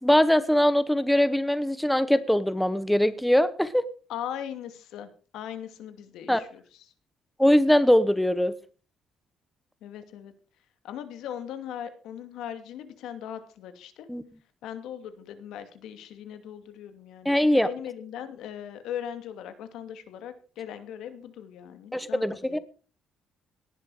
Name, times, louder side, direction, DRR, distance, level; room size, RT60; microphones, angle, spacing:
voice 1, 0.0-3.8 6.3-6.4 7.4-8.5 14.1-14.2 17.2-17.7 21.9-22.6, equal, 5° left, 14 dB, 0.9 m, -22 dB
voice 2, 4.1-6.9 9.8-10.3 10.8-14.1 14.6-22.6, left 9 dB, 90° left, 9 dB, 2.5 m, -39 dB
18.0 x 11.0 x 4.9 m, 0.39 s
cardioid pair, 150°, 0 cm